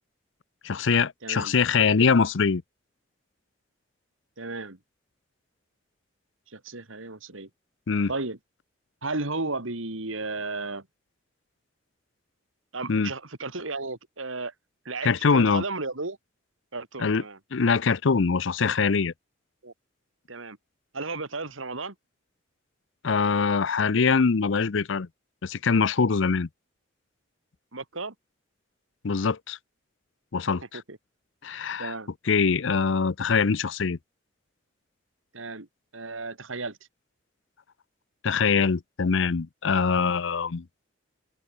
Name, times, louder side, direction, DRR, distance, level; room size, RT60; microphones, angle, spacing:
voice 1, 0.6-2.6 7.9-8.1 12.9-13.1 15.0-15.6 17.0-17.2 17.5-19.1 23.0-25.1 25.4-26.5 29.0-29.6 30.3-30.8 31.4-31.9 32.3-34.0 38.2-40.6, left 5 dB, 75° left, 0.6 m, -23 dB
voice 2, 1.2-1.5 4.4-4.8 6.5-7.5 8.1-8.4 9.0-10.9 12.7-14.5 14.8-16.2 16.7-17.4 19.6-19.7 20.3-20.6 20.9-21.9 27.7-28.1 30.9-31.0 31.8-32.1 35.3-35.7 35.9-36.8, right 3 dB, 90° right, 2.8 m, -34 dB
head